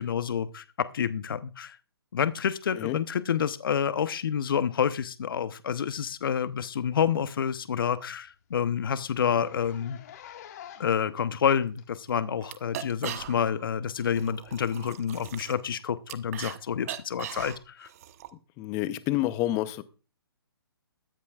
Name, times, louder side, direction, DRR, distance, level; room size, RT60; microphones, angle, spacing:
voice 1, 0.0-1.8 2.1-10.0 10.8-17.9, left 8 dB, 60° left, 13 dB, 0.9 m, -28 dB
Zipper (clothing), 6.4-6.6 7.0-7.1 7.5-7.6 7.9-8.0 8.3-8.4 9.1-11.1 11.8-11.9 12.9-13.0, left 10 dB, 40° left, 1.7 m, -47 dB
sound 1, 11.7-11.8 12.1-12.2 12.4-13.6 14.0-16.6 16.8-18.3, right 11 dB, 35° right, 1.0 m, -39 dB
voice 2, 18.6-19.8, left 15 dB, 20° left, 15 dB, 0.7 m, -28 dB
21.5 x 8.5 x 2.4 m, 0.35 s
hypercardioid pair, 145°, 13 cm